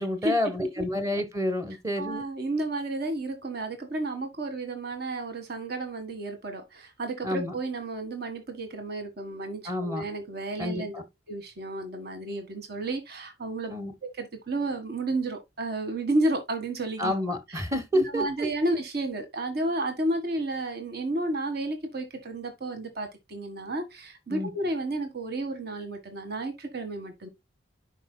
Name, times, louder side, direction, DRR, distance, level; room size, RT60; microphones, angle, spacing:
voice 1, 0.0-2.2 7.2-7.5 9.6-10.1 10.6-11.0 13.7-13.9 17.0-18.5 24.3-24.5, left 1 dB, 15° right, 1.2 m, -29 dB
voice 2, 2.0-11.0 11.3-13.7 14.0-17.1 17.5-17.6 17.9-27.3, right 2 dB, 60° right, 1.7 m, -32 dB
10.5 x 5.2 x 2.2 m
head